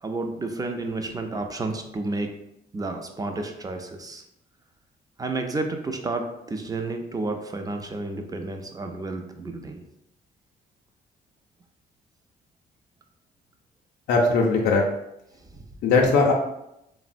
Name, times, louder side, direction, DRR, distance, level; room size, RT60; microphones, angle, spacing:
voice 1, 0.0-2.3 2.7-4.2 5.2-9.8 15.5-15.6, right 2 dB, 20° right, 5 dB, 0.4 m, -31 dB
voice 2, 14.1-14.8 15.8-16.3, left 3 dB, 80° left, -1 dB, 0.5 m, -19 dB
3.4 x 2.0 x 2.5 m, 0.83 s
cardioid pair, 80°, 18 cm